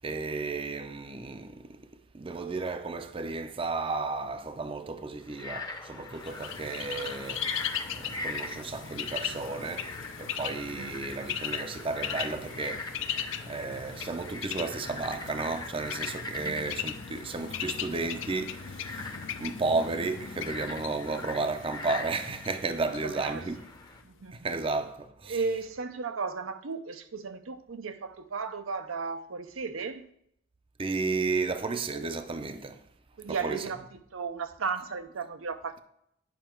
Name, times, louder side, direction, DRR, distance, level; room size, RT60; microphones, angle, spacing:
voice 1, 0.0-1.8 2.1-7.5 7.9-9.9 10.2-12.9 13.4-19.1 19.4-23.6 24.3-25.4 30.8-32.8 33.3-33.6, right 3 dB, 25° right, 0.5 m, -33 dB
Frog, 5.3-24.0, left 3 dB, 20° left, 0.8 m, -42 dB
Bird, 6.2-24.0, left 8 dB, 65° left, 0.6 m, -38 dB
voice 2, 16.3-16.7 22.8-23.5 24.0-24.5 25.3-30.1 33.2-33.9 34.1-35.8, right 5 dB, 90° right, 0.7 m, -35 dB
9.4 x 5.6 x 4.4 m
head